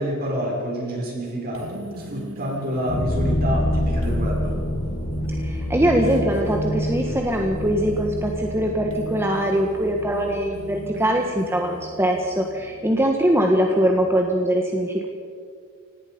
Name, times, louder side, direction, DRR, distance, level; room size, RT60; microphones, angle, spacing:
voice 1, 0.0-4.5, equal, 45° right, -2 dB, 6.5 m, -28 dB
sound 1, 1.5-14.1, right 1 dB, 75° right, 2.6 m, -41 dB
sound 2, 2.9-11.7, equal, 35° left, 2.2 m, -27 dB
voice 2, 5.4-15.1, equal, 10° right, 1 dB, 1.5 m, -22 dB
25.5 x 19.0 x 5.4 m, 2.1 s
head